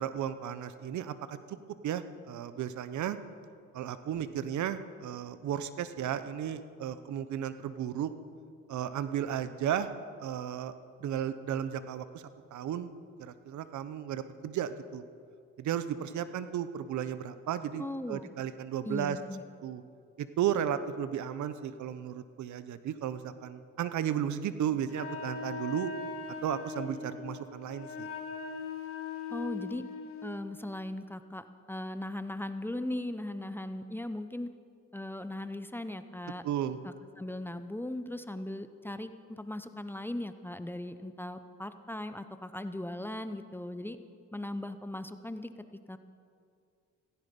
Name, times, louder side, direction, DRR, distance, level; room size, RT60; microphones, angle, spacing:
voice 1, 0.0-1.6 1.8-3.2 3.7-8.1 8.7-9.9 10.2-10.7 11.0-12.2 12.5-12.9 13.2-15.0 15.6-19.2 19.6-19.8 20.2-25.9 26.4-28.1 36.4-36.8, right 9 dB, 70° right, 13 dB, 0.8 m, -34 dB
voice 2, 17.8-18.3 18.8-19.4 29.3-29.8 30.2-34.5 34.9-36.4 36.8-44.0 44.3-45.5 45.9-46.0, left 1 dB, 5° left, 10 dB, 0.7 m, -38 dB
Wind instrument woodwind instrument, 24.9-30.4, left 5 dB, 45° left, 1.6 m, -40 dB
16.0 x 15.0 x 5.3 m, 2.3 s
cardioid pair, 90°, 30 cm